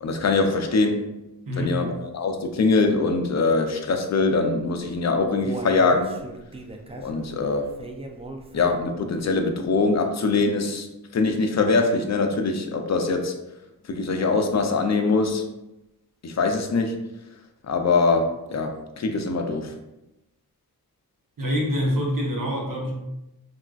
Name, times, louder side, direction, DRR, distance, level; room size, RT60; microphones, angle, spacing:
voice 1, 0.0-1.1 1.6-6.1 7.0-7.7 8.5-10.9 11.1-13.3 13.9-15.4 16.2-17.0 17.7-19.7, left 3 dB, 45° left, 5 dB, 0.5 m, -23 dB
voice 2, 1.5-1.8 21.4-22.9, equal, 55° right, -1 dB, 0.8 m, -25 dB
Human voice, 4.9-9.0 9.4-9.5 9.9-10.0, right 2 dB, 15° right, 0.3 m, -38 dB
3.5 x 2.3 x 2.3 m, 0.92 s
wide cardioid pair, 70°, 39 cm